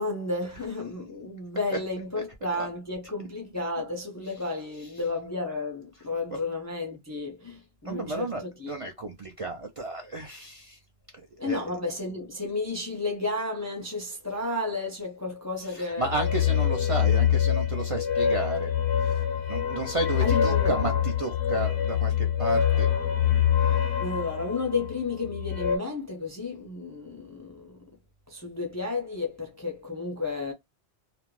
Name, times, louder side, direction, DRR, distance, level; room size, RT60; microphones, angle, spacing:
voice 1, 0.0-8.7 11.4-16.1 20.2-21.0 24.0-27.9 28.3-30.5, left 3 dB, 25° left, 0.4 m, -32 dB
voice 2, 4.2-5.1 5.9-6.4 7.8-10.8 11.4-11.9 15.6-18.7 19.0-19.2 19.5-22.9, right 2 dB, 45° right, 0.4 m, -33 dB
sound 1, 16.0-25.8, left 9 dB, 90° left, 0.9 m, -25 dB
2.5 x 2.1 x 3.0 m
omnidirectional pair, 1.1 m